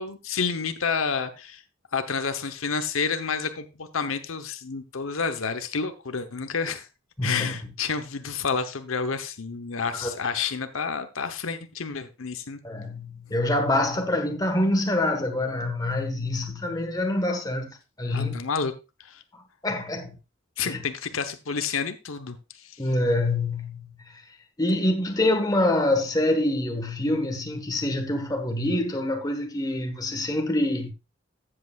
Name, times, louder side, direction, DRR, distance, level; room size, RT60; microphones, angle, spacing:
voice 1, 0.0-1.6 1.9-6.9 7.2-12.6 18.1-18.7 19.0-19.2 20.6-22.8, left 5 dB, 85° left, 0.9 m, -29 dB
voice 2, 7.2-7.5 10.0-10.2 12.6-18.4 19.6-20.1 20.6-20.8 22.8-23.9 24.6-30.9, left 1 dB, 20° left, 1.4 m, -25 dB
14.0 x 7.9 x 2.4 m
head